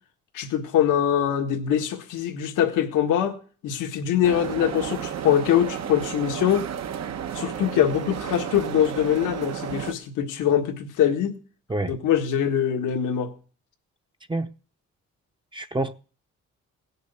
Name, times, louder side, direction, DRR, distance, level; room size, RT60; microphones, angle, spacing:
voice 1, 0.3-3.4 3.6-6.7 7.3-11.4 11.9-13.3, left 10 dB, 85° left, 1.7 m, -23 dB
sound 1, 4.2-9.9, right 9 dB, 60° right, 1.1 m, -32 dB
voice 2, 15.5-15.9, right 2 dB, 15° right, 0.8 m, -27 dB
17.0 x 6.7 x 8.2 m
cardioid pair, 90°, 30 cm